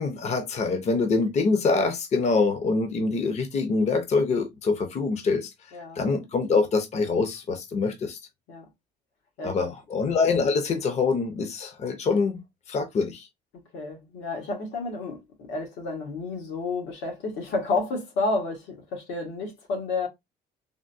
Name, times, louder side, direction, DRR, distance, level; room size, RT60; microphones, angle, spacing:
voice 1, 0.0-5.5 6.0-8.2 9.4-12.4 12.7-13.3, left 4 dB, 40° left, 0.7 m, -25 dB
voice 2, 5.7-6.0 8.5-8.6 9.4-9.6 13.7-20.1, left 3 dB, 90° left, 1.4 m, -30 dB
3.5 x 2.2 x 2.6 m
cardioid pair, 110°, 17 cm